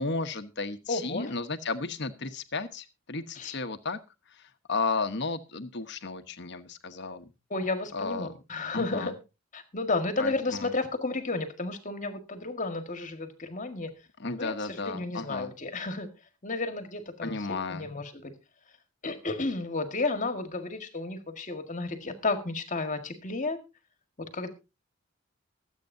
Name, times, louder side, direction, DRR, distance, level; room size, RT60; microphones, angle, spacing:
voice 1, 0.0-4.0 4.3-7.3 7.9-8.3 8.7-9.1 10.2-10.7 14.2-15.5 17.2-17.9, left 3 dB, 55° left, 10 dB, 1.1 m, -33 dB
voice 2, 0.9-1.3 3.4-3.6 7.5-9.1 9.5-13.9 14.4-16.1 16.4-18.3 19.0-23.6 24.3-24.5, left 3 dB, 40° left, 7 dB, 1.8 m, -32 dB
24.0 x 8.4 x 2.7 m, 0.27 s
head